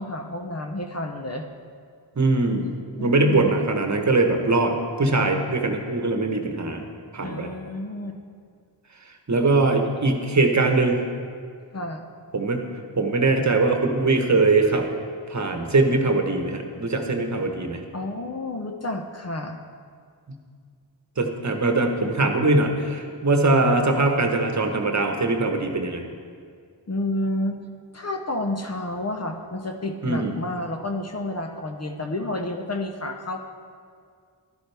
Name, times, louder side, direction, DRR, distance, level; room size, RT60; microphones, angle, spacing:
voice 1, 0.0-1.4 3.0-3.7 7.2-8.2 11.7-12.1 17.9-19.6 26.9-27.6 27.9-33.4, left 1 dB, 35° left, 5 dB, 0.8 m, -30 dB
voice 2, 2.2-2.7 3.0-6.8 7.1-7.5 9.3-11.0 12.3-12.6 13.0-14.9 15.3-17.8 21.2-26.0 30.0-30.4, right 2 dB, 40° right, 4 dB, 1.2 m, -21 dB
11.5 x 10.5 x 3.4 m, 2.1 s
cardioid pair, 50°, 45 cm